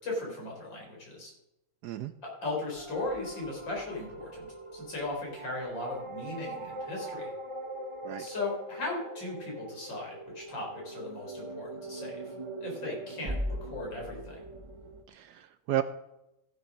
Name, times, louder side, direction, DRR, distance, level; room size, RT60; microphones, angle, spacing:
voice 1, 0.0-1.3 2.2-4.5 4.7-7.3 8.2-12.2 12.6-14.4, left 2 dB, 70° left, -2 dB, 4.7 m, -37 dB
sound 1, 2.8-15.0, right 1 dB, 50° right, 0.3 m, -41 dB
voice 2, 15.1-15.8, right 12 dB, 70° right, 12 dB, 1.0 m, -33 dB
14.5 x 6.8 x 6.1 m, 0.89 s
omnidirectional pair, 2.1 m